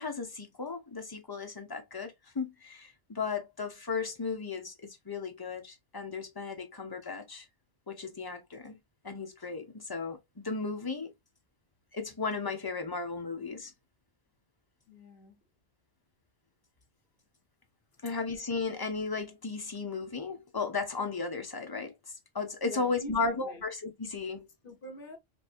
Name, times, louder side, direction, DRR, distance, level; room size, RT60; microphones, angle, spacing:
voice 1, 0.0-7.5 7.9-8.7 9.0-11.1 11.9-13.7 18.0-21.9 22.3-24.5, left 4 dB, 25° left, 0.7 m, -35 dB
voice 2, 14.9-15.4 17.9-18.0 22.6-23.6 24.6-25.2, equal, 55° left, 1.2 m, -45 dB
4.5 x 2.7 x 2.5 m
omnidirectional pair, 1.1 m